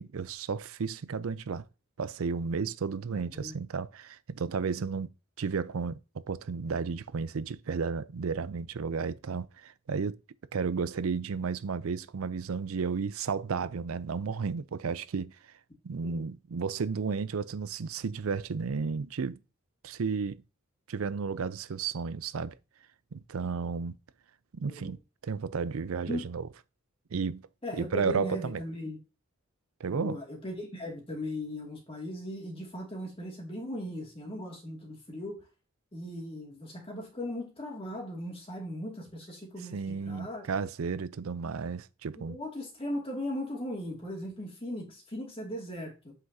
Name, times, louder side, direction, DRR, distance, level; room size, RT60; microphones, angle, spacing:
voice 1, 0.0-1.6 2.0-5.1 5.4-10.2 10.5-15.3 15.8-19.4 19.8-20.4 20.9-22.6 23.1-24.0 24.5-26.5 27.1-27.4 27.7-28.6 29.8-30.2 39.7-42.4, right 5 dB, 85° right, 0.5 m, -33 dB
voice 2, 27.6-29.0 29.9-35.4 35.9-40.4 42.2-46.1, left 1 dB, 25° left, 2.3 m, -38 dB
7.9 x 5.9 x 2.8 m
head